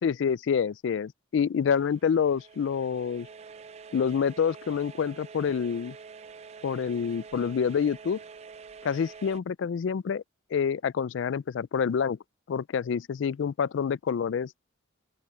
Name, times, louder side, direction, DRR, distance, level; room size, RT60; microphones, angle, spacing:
voice 1, 0.0-3.3 3.9-6.0 6.6-8.2 8.8-10.2 10.5-12.2 12.5-14.5, left 6 dB, 70° left, 0.3 m, -27 dB
sound 1, 1.8-9.4, right 5 dB, 30° right, 0.4 m, -47 dB
open air
head